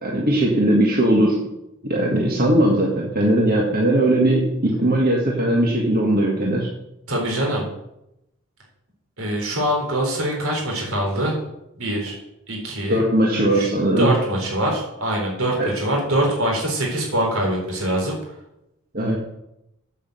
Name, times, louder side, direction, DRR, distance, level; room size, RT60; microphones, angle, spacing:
voice 1, 0.0-1.4 1.8-6.7 12.9-14.1 15.6-15.7 18.9-19.2, right 1 dB, 40° right, -2 dB, 1.7 m, -19 dB
voice 2, 7.1-7.7 9.2-11.4 11.8-12.2 12.5-13.0 13.3-13.7 14.0-18.2, right 1 dB, 65° right, -1 dB, 4.1 m, -23 dB
8.5 x 7.6 x 8.1 m, 0.86 s
head